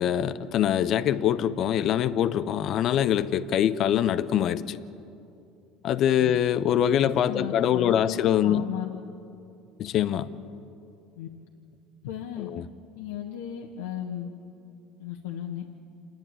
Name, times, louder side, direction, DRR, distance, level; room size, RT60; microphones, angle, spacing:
voice 1, 0.0-4.8 5.8-8.6 9.8-10.3 12.4-12.6, left 10 dB, 55° left, 13 dB, 0.9 m, -24 dB
voice 2, 7.0-8.9 11.2-11.3 12.0-12.5 12.9-14.3 15.0-15.7, left 10 dB, 90° left, 0 dB, 1.4 m, -35 dB
28.5 x 10.5 x 9.1 m, 2.6 s
supercardioid pair, 90°, 0 cm